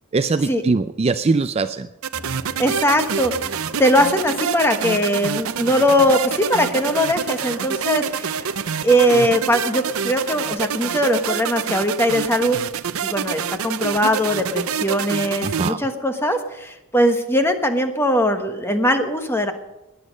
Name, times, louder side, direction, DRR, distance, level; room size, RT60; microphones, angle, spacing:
voice 1, 0.1-1.9 15.4-15.8, right 4 dB, 30° right, 11 dB, 0.4 m, -21 dB
sound 1, 2.0-15.7, right 7 dB, 70° right, 0.6 m, -27 dB
sound 2, 2.1-10.5, left 2 dB, 60° left, 2.1 m, -41 dB
voice 2, 2.6-3.3 3.8-8.5 8.8-12.6 13.0-19.5, equal, 10° left, 6 dB, 1.3 m, -20 dB
20.5 x 8.3 x 5.3 m, 0.96 s
head